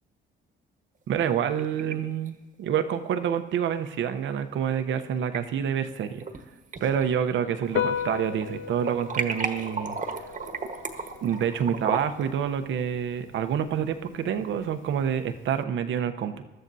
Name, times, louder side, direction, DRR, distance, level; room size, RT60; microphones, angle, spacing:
voice 1, 1.1-6.2 6.8-10.0 11.2-16.4, right 8 dB, 75° right, 9 dB, 0.8 m, -27 dB
sound 1, 1.2-2.0 2.3-2.4 3.9-4.0 5.0-5.4 5.9-6.4 6.7-8.1 8.4-12.3, right 4 dB, 40° right, 1.3 m, -34 dB
Piano, 7.7-15.6, left 9 dB, 75° left, 0.5 m, -37 dB
20.5 x 13.0 x 2.7 m, 1.2 s
cardioid pair, 90°, 20 cm